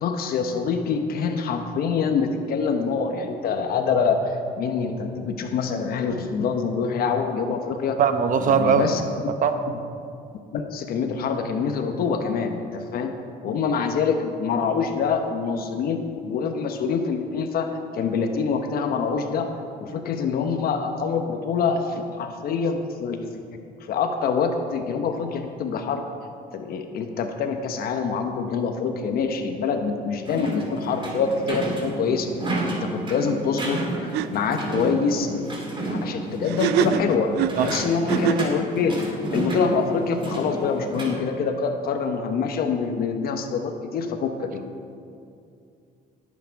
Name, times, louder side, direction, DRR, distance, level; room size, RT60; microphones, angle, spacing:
voice 1, 0.0-8.0 8.4-9.3 9.7-9.8 10.5-13.1 13.4-17.7 17.9-19.5 19.8-23.3 23.8-26.0 26.5-32.3 32.7-35.3 35.9-44.6, left 5 dB, 65° left, 5 dB, 1.1 m, -25 dB
voice 2, 8.0-8.9 9.4-9.5 37.6-37.7, right 7 dB, 50° right, 8 dB, 1.0 m, -19 dB
sound 1, 30.2-41.1, right 2 dB, 30° right, 2.8 m, -30 dB
sound 2, 33.7-33.9 34.1-34.3 36.4-38.6, right 13 dB, 80° right, 0.5 m, -25 dB
18.5 x 8.5 x 4.7 m, 2.5 s
cardioid pair, 110°, 17 cm